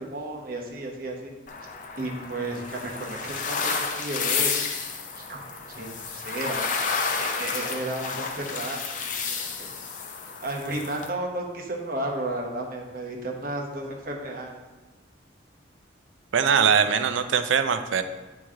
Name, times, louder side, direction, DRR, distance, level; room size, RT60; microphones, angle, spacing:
voice 1, 0.0-1.3 2.0-4.5 5.2-6.7 7.2-9.7 10.4-14.6, right 1 dB, 50° right, 0 dB, 1.0 m, -33 dB
sound 1, 1.5-11.1, left 5 dB, 45° left, 0.5 m, -31 dB
voice 2, 16.3-18.0, right 6 dB, 85° right, 9 dB, 0.5 m, -21 dB
9.0 x 3.1 x 3.7 m, 1.2 s
head